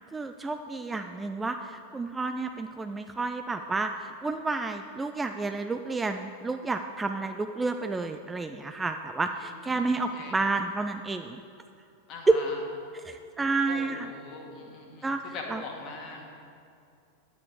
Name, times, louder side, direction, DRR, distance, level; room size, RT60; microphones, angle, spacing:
voice 1, 0.1-11.4 12.3-12.4 12.9-14.1 15.0-15.6, right 3 dB, 10° right, 7 dB, 0.4 m, -30 dB
voice 2, 9.7-10.3 12.1-12.6 13.7-16.2, left 3 dB, 35° left, 0 dB, 2.0 m, -41 dB
10.5 x 9.0 x 4.9 m, 2.5 s
figure-of-eight pair, 90°, 0 cm